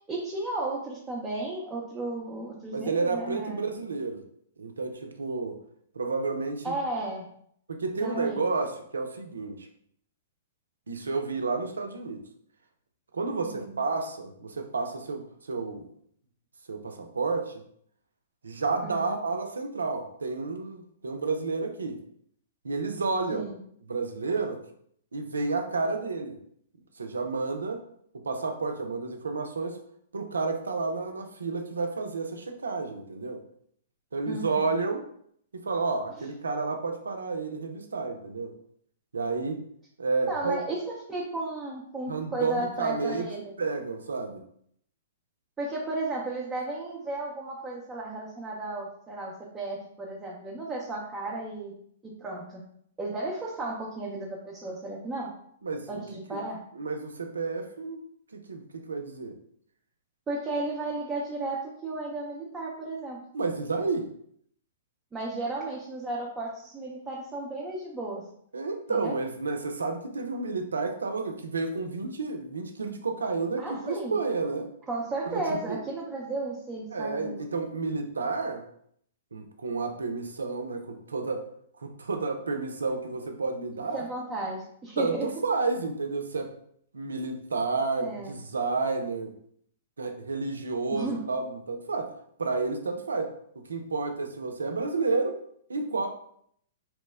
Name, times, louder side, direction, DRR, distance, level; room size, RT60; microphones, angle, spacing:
voice 1, 0.1-3.7 6.6-7.3 8.0-8.5 13.4-13.8 18.8-19.2 23.3-23.5 34.3-34.7 36.2-36.3 40.3-40.8 41.1-43.5 45.6-51.7 52.0-52.6 53.0-55.3 55.9-56.6 60.3-63.2 65.1-68.2 68.9-69.2 73.6-74.1 74.9-77.4 83.9-85.3 88.0-88.3 90.9-91.3, right 2 dB, 15° right, -4 dB, 0.6 m, -34 dB
voice 2, 2.7-4.2 4.6-5.6 5.9-6.8 7.7-9.7 10.9-12.2 13.1-15.9 16.7-17.6 18.4-22.0 22.6-23.5 23.9-24.6 25.1-26.4 27.0-27.8 28.1-29.8 30.1-33.4 34.1-35.0 35.5-38.5 39.1-39.6 40.0-40.6 42.1-43.3 43.6-44.4 55.6-56.0 56.3-56.4 56.7-58.0 58.3-58.6 58.9-59.4 63.3-64.1 68.5-74.7 75.3-75.8 76.9-78.6 79.3-81.4 81.8-84.0 85.0-86.5 86.9-89.3 90.0-92.1 92.4-95.4 95.7-96.1, right 3 dB, 85° right, 5 dB, 0.5 m, -31 dB
3.0 x 2.1 x 3.4 m, 0.67 s
hypercardioid pair, 120°, 0 cm